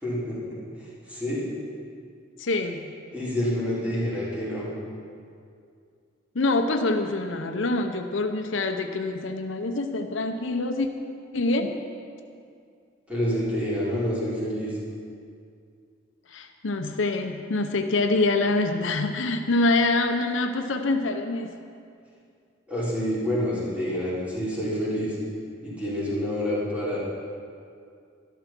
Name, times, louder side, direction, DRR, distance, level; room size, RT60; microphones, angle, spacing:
voice 1, 0.0-1.4 3.1-4.7 13.1-14.7 22.7-25.1 25.6-27.0, equal, 5° right, -9 dB, 4.3 m, -28 dB
voice 2, 2.4-2.9 6.3-10.9 11.3-11.8 16.3-21.5, left 2 dB, 80° left, 5 dB, 0.8 m, -25 dB
12.5 x 11.5 x 6.0 m, 2.3 s
head